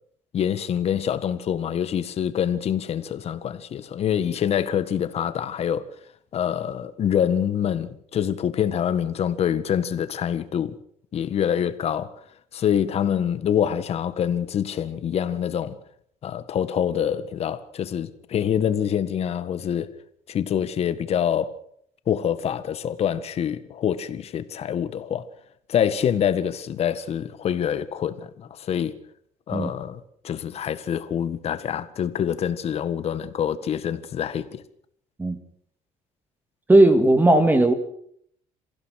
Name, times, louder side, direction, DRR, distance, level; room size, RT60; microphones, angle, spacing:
voice 1, 0.3-5.9 6.3-10.7 11.1-12.1 12.5-15.7 16.2-19.9 20.3-21.6 22.1-25.3 25.7-28.9 29.5-34.6, left 9 dB, 50° left, 1.7 m, -25 dB
voice 2, 36.7-37.7, right 1 dB, 15° right, 2.3 m, -16 dB
27.5 x 16.0 x 6.6 m
cardioid pair, 130°, 14 cm